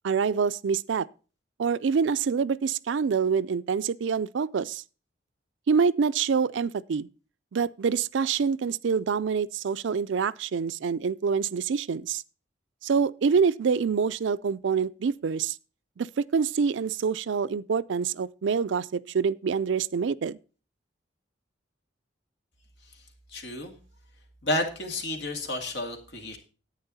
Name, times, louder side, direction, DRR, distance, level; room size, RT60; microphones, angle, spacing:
voice 1, 0.0-1.1 1.6-4.8 5.7-7.1 7.5-12.2 12.8-15.6 16.0-20.4, right 6 dB, 80° right, 0.4 m, -26 dB
voice 2, 23.3-23.8 24.4-26.4, left 1 dB, 75° left, 2.2 m, -31 dB
10.5 x 8.8 x 4.1 m
head